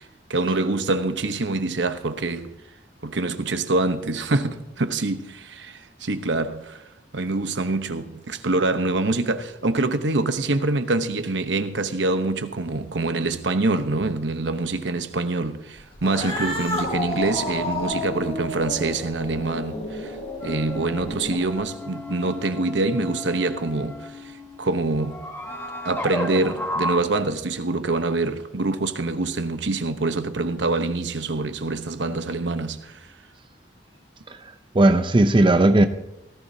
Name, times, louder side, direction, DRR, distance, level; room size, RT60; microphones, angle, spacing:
voice 1, 0.0-2.5 3.0-6.8 7.1-20.2 20.4-24.3 24.6-25.2 25.8-33.1, right 2 dB, 80° right, 0.9 m, -25 dB
Cat, 15.9-21.6, left 1 dB, 35° left, 3.6 m, -31 dB
sound 1, 20.4-27.0, left 1 dB, 10° left, 1.2 m, -33 dB
voice 2, 34.3-35.9, right 1 dB, 30° right, 0.6 m, -17 dB
17.5 x 14.5 x 2.8 m
head